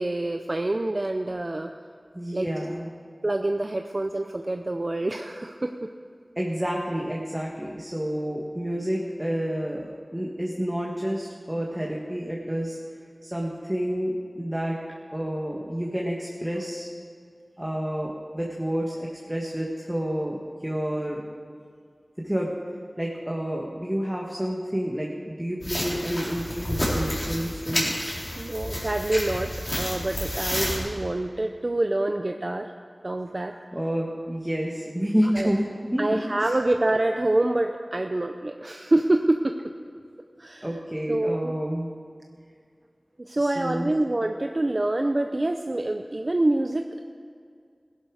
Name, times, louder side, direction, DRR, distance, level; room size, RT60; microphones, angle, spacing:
voice 1, 0.0-1.7 2.3-2.6 3.2-5.7 28.4-32.7 33.0-33.6 35.3-35.5 36.0-39.5 40.4-40.7 41.1-41.5 43.2-47.0, right 2 dB, 50° right, 5 dB, 0.6 m, -26 dB
voice 2, 2.1-2.9 6.3-12.8 13.2-14.8 15.1-16.9 17.6-21.2 22.2-22.5 23.0-28.1 33.7-36.1 36.4-36.5 40.6-41.9 43.4-43.9, equal, 15° right, -2 dB, 1.7 m, -29 dB
sound 1, 25.6-30.8, equal, 30° left, 3.9 m, -30 dB
16.5 x 11.0 x 4.9 m, 2.2 s
wide cardioid pair, 45°, 0 cm